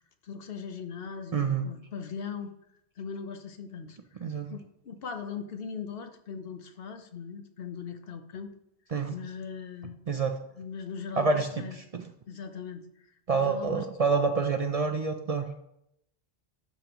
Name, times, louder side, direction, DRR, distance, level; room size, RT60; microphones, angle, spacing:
voice 1, 0.2-2.5 3.0-8.5 9.1-10.0 10.6-11.8 12.3-12.8 13.3-13.9, left 6 dB, 70° left, 7 dB, 1.0 m, -39 dB
voice 2, 1.3-1.7 4.2-4.5 8.9-9.1 10.1-10.3 11.2-11.5 11.9-12.0 13.3-15.4, right 4 dB, 45° right, 6 dB, 0.5 m, -27 dB
12.0 x 5.2 x 3.0 m, 0.78 s
omnidirectional pair, 1.0 m